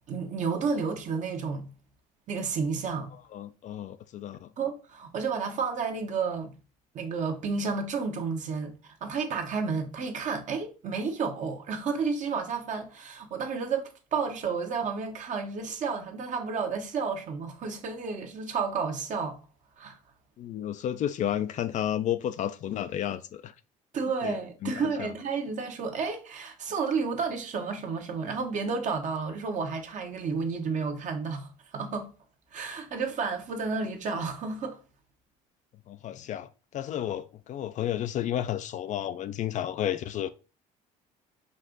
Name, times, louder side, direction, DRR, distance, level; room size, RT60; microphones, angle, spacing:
voice 1, 0.1-1.7 2.3-3.1 4.6-6.5 6.9-19.4 19.8-20.0 23.9-32.1 32.5-34.8, right 5 dB, 50° right, 1.1 m, -31 dB
voice 2, 3.3-4.5 20.4-23.5 24.2-25.1 35.9-40.3, left 11 dB, 50° left, 0.4 m, -32 dB
5.3 x 2.5 x 3.8 m
supercardioid pair, 95°, 17 cm